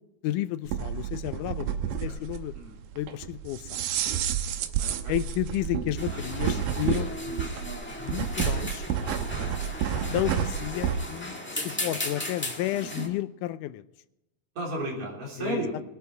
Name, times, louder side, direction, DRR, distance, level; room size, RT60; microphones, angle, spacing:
voice 1, 0.2-2.5 3.0-3.8 5.1-7.2 8.0-8.9 10.1-13.9 15.4-15.6, left 14 dB, 85° left, 13 dB, 2.1 m, -32 dB
sound 1, 0.7-11.0, right 9 dB, 85° right, 2.4 m, -30 dB
voice 2, 4.8-5.1 6.1-6.2 7.2-7.4 9.2-9.5 14.6-15.7, right 1 dB, 65° right, -3 dB, 5.1 m, -34 dB
sound 2, 6.0-13.1, left 1 dB, 10° left, 0.6 m, -36 dB
21.0 x 8.2 x 4.5 m, 0.95 s
omnidirectional pair, 3.6 m